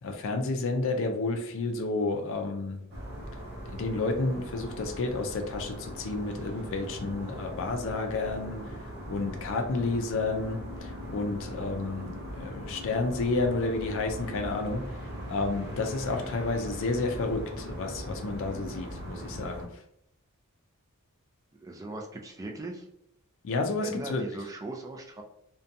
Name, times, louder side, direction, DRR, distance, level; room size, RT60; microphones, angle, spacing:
voice 1, 0.0-2.8 3.7-14.8 15.2-19.7 23.4-24.2, left 3 dB, 60° left, 4 dB, 0.4 m, -31 dB
sound 1, 2.9-19.6, equal, 50° right, 0.7 m, -40 dB
voice 2, 21.5-22.9 23.8-25.2, right 2 dB, 15° right, 1 dB, 0.4 m, -39 dB
2.6 x 2.2 x 2.6 m, 0.75 s
head